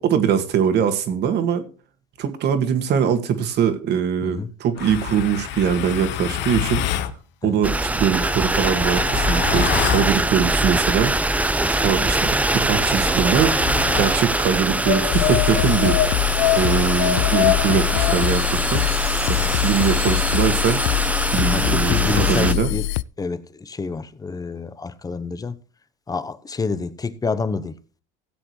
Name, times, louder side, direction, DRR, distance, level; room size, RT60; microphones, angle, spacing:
voice 1, 0.0-1.6 2.2-6.8 7.4-11.4 11.7-13.6 13.9-16.0 16.6-18.8 19.3-20.8 21.3-22.7, right 8 dB, 55° right, 1.9 m, -22 dB
voice 2, 4.2-4.5 7.4-7.6 11.6-11.9 19.3-19.6 21.5-22.9 23.2-25.6 26.1-27.7, left 4 dB, 15° left, 0.8 m, -28 dB
sound 1, 4.8-7.1 8.1-10.2 11.8-14.2 14.8-18.3, left 12 dB, 60° left, 1.2 m, -26 dB
sound 2, 7.6-22.5, right 2 dB, 5° right, 0.6 m, -23 dB
sound 3, 15.1-23.0, left 18 dB, 90° left, 0.4 m, -23 dB
16.5 x 7.8 x 3.2 m
supercardioid pair, 115°, 21 cm